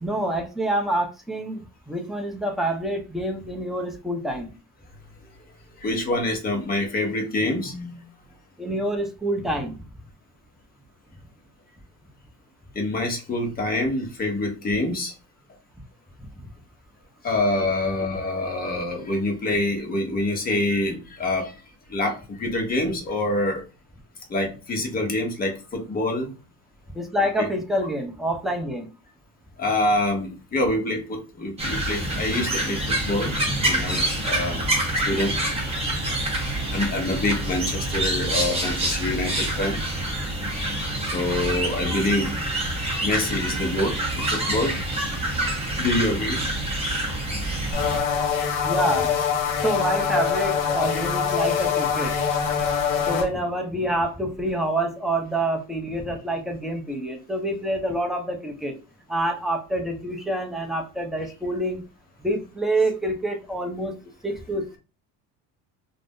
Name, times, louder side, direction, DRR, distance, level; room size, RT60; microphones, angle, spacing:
voice 1, 0.0-4.5 8.6-9.8 16.2-16.5 26.9-28.9 48.6-49.2 49.5-52.2 53.0-58.8 59.1-61.8 62.2-64.0 64.2-64.8, right 1 dB, ahead, 2 dB, 0.5 m, -27 dB
voice 2, 5.8-8.0 12.7-15.1 17.2-21.5 21.9-23.6 24.3-26.3 27.4-27.5 29.6-34.6 35.1-35.4 36.4-39.8 41.1-42.3 43.0-44.7 45.8-46.4 46.9-47.0 47.7-47.8, left 1 dB, 25° left, 2 dB, 0.9 m, -26 dB
sound 1, 31.6-48.0, right 1 dB, 15° right, 0.9 m, -27 dB
sound 2, 47.7-53.3, left 7 dB, 70° left, 0.9 m, -24 dB
2.5 x 2.0 x 3.5 m, 0.32 s
cardioid pair, 125°, 35 cm